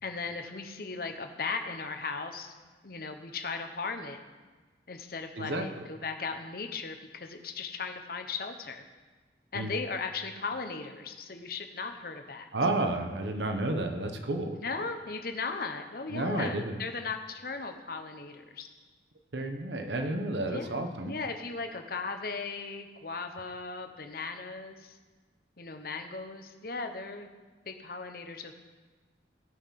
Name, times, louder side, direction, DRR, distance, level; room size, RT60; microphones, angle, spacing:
voice 1, 0.0-2.5 2.8-4.2 4.9-8.8 9.5-12.5 14.6-18.7 20.5-25.0 25.6-27.3 27.6-28.5, left 4 dB, 55° left, 6 dB, 1.0 m, -37 dB
voice 2, 12.5-14.6 16.1-16.8 19.3-21.1, right 2 dB, 85° right, 5 dB, 1.1 m, -31 dB
17.5 x 5.9 x 5.9 m, 1.3 s
head